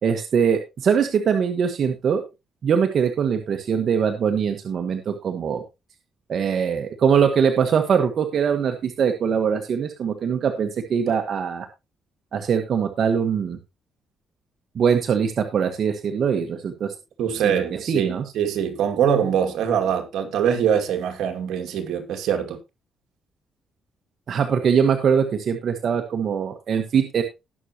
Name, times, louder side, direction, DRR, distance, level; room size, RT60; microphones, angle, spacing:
voice 1, 0.0-2.2 2.6-5.6 6.3-11.7 12.3-13.6 14.7-16.9 17.4-18.2 24.3-27.2, right 7 dB, 55° right, 1.4 m, -22 dB
voice 2, 17.2-22.6, right 8 dB, 80° right, 2.3 m, -23 dB
18.5 x 6.4 x 3.0 m
cardioid pair, 90°, 0 cm